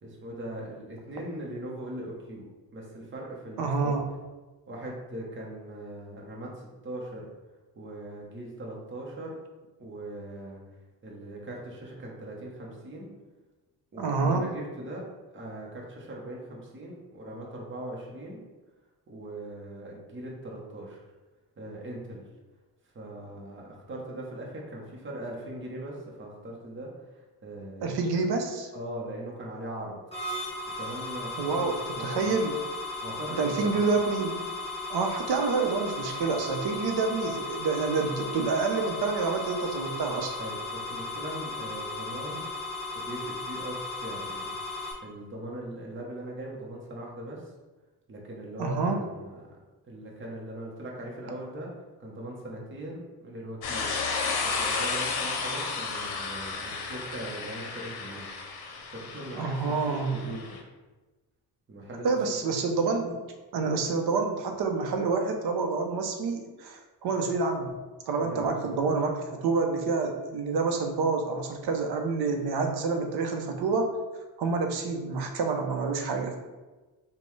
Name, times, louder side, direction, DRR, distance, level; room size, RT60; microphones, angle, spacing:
voice 1, 0.0-2.5 2.7-4.0 4.7-7.3 7.8-9.4 9.8-10.6 11.0-13.1 13.9-15.0 15.3-18.4 19.1-21.0 21.6-22.2 22.9-27.9 28.7-30.0 30.7-32.3 33.0-33.9 40.4-42.4 42.9-47.5 48.1-49.3 49.8-51.7 52.0-53.9 54.4-58.3 58.9-60.6 61.7-62.1 62.6-62.7 68.2-68.8, right 1 dB, 30° right, -2 dB, 0.8 m, -40 dB
voice 2, 3.6-4.0 14.0-14.5 27.8-28.7 31.4-32.6 33.4-34.5 34.9-40.4 48.6-49.0 59.4-60.2 62.0-63.2 63.5-67.8 68.1-73.9 74.4-76.4, right 4 dB, 75° right, 4 dB, 0.7 m, -28 dB
sound 1, 30.1-44.9, left 2 dB, 15° left, 1.0 m, -36 dB
sound 2, 53.6-60.6, left 4 dB, 70° left, 0.7 m, -33 dB
5.2 x 2.3 x 3.1 m, 1.2 s
cardioid pair, 140°, 39 cm